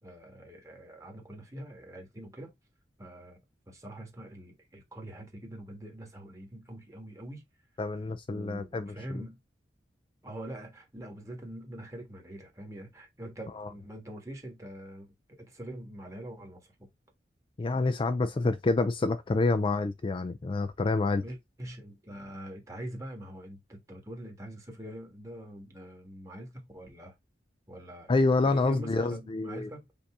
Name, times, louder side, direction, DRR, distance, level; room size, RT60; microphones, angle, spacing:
voice 1, 0.0-2.5 3.0-3.4 3.7-7.4 8.3-9.4 10.2-16.9 21.2-27.1 27.7-29.9, right 1 dB, 20° right, 1.4 m, -44 dB
voice 2, 7.8-9.2 13.6-13.7 17.6-21.2 28.1-29.7, left 3 dB, 30° left, 0.4 m, -28 dB
5.2 x 2.7 x 3.5 m
head